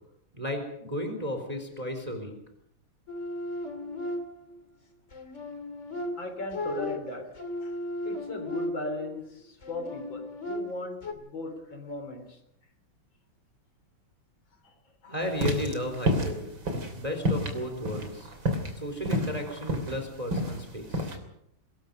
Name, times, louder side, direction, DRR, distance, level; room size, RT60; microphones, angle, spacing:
voice 1, 0.3-2.3 15.1-16.5 17.0-18.3 18.8-21.1, equal, 15° right, 5 dB, 3.7 m, -34 dB
sound 1, 3.1-4.6 5.1-9.1 9.6-11.1, left 1 dB, 35° left, 2.9 m, -36 dB
voice 2, 6.2-7.4 7.6-7.8 8.0-12.4 14.6-15.2, left 2 dB, 60° left, 6 dB, 4.5 m, -38 dB
sound 2, 15.3-21.2, equal, 65° right, 3.9 m, -29 dB
24.5 x 21.0 x 5.3 m, 0.75 s
omnidirectional pair, 2.3 m